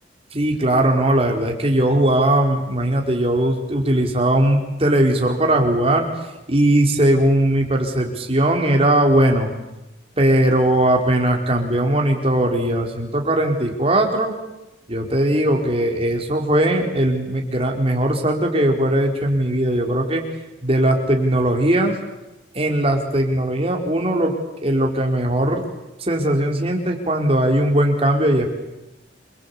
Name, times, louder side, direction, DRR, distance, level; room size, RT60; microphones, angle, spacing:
voice 1, 0.3-6.1 6.5-9.5 10.2-14.3 14.9-20.2 20.6-22.0 22.5-24.4 24.6-25.6 26.0-28.5, right 1 dB, 30° right, 2 dB, 4.4 m, -19 dB
27.5 x 23.5 x 8.5 m, 0.96 s
head